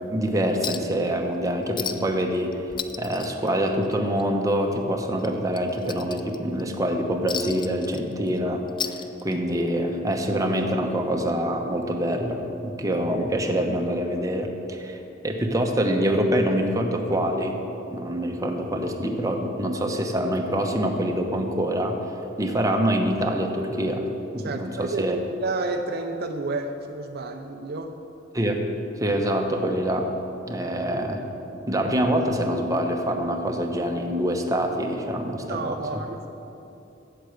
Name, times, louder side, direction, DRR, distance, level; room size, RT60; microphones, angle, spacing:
voice 1, 0.1-2.5 3.0-17.6 17.9-22.0 22.4-24.1 24.3-25.2 28.3-28.6 29.0-30.1 30.5-31.2 31.7-36.0, equal, 15° right, 3 dB, 0.9 m, -25 dB
Chink clink, 0.6-1.0 1.3-1.4 1.8-2.2 2.5-4.2 4.6-4.7 5.2-6.6 7.3-8.4 8.7-9.6 10.7-10.8, left 7 dB, 25° left, 0.3 m, -34 dB
voice 2, 24.4-28.0 35.5-36.3, right 3 dB, 50° right, 5 dB, 0.5 m, -30 dB
8.3 x 7.8 x 7.9 m, 2.9 s
head